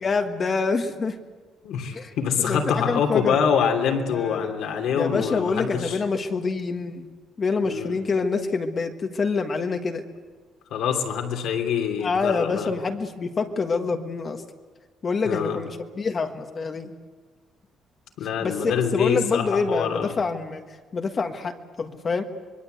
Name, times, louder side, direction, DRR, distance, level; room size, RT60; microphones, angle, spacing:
voice 1, 0.0-1.1 1.9-2.1 2.4-3.4 4.1-4.4 4.9-7.1 7.4-10.0 12.0-14.4 15.0-16.9 18.4-20.6 20.9-22.2, left 4 dB, 35° left, 5 dB, 1.6 m, -26 dB
voice 2, 1.6-6.0 7.6-8.0 10.7-12.7 15.2-15.6 18.2-20.1, left 7 dB, 75° left, 3 dB, 3.1 m, -25 dB
26.0 x 22.0 x 8.1 m, 1.4 s
cardioid pair, 130°, 0 cm